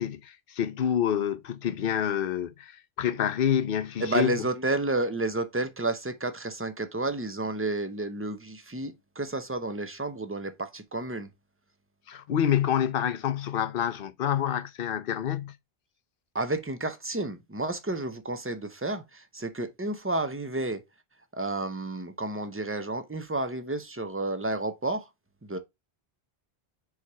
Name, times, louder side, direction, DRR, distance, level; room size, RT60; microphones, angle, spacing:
voice 1, 0.0-4.3 12.1-15.5, left 9 dB, 65° left, 0.8 m, -27 dB
voice 2, 4.0-11.3 16.3-20.8 21.4-25.1 25.4-25.6, right 2 dB, 15° right, 0.6 m, -31 dB
4.8 x 4.2 x 4.5 m
omnidirectional pair, 1.0 m